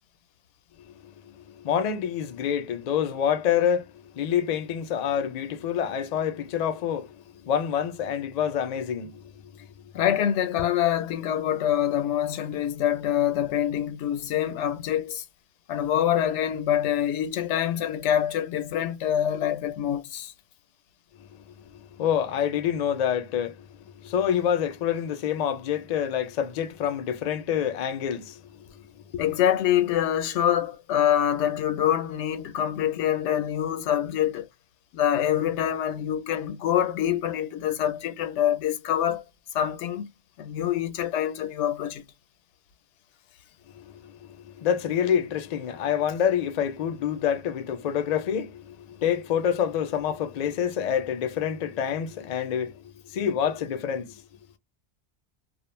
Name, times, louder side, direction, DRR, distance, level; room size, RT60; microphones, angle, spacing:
voice 1, 1.0-9.3 21.3-21.4 22.0-28.4 29.0-29.2 43.7-54.2, left 8 dB, 55° left, 0.4 m, -27 dB
voice 2, 9.9-15.2 15.7-20.3 29.2-34.5 34.9-39.3 39.5-40.1 40.4-42.0, left 10 dB, 90° left, 0.9 m, -25 dB
2.3 x 2.0 x 3.0 m
omnidirectional pair, 1.2 m